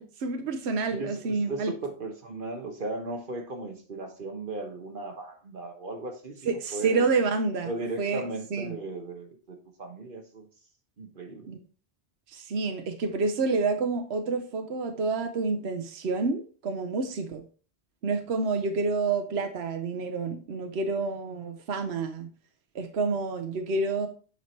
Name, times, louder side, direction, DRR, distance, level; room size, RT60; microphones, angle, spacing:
voice 1, 0.0-1.7 6.5-7.7 8.0-8.2 8.5-8.7 11.5-11.6 12.3-17.4 18.0-22.3 22.7-24.1, right 4 dB, 70° right, 6 dB, 1.1 m, -28 dB
voice 2, 0.9-7.1 7.6-10.5 11.0-11.5 23.7-23.8, right 2 dB, 50° right, 5 dB, 1.3 m, -37 dB
8.3 x 4.6 x 4.4 m, 0.39 s
omnidirectional pair, 1.1 m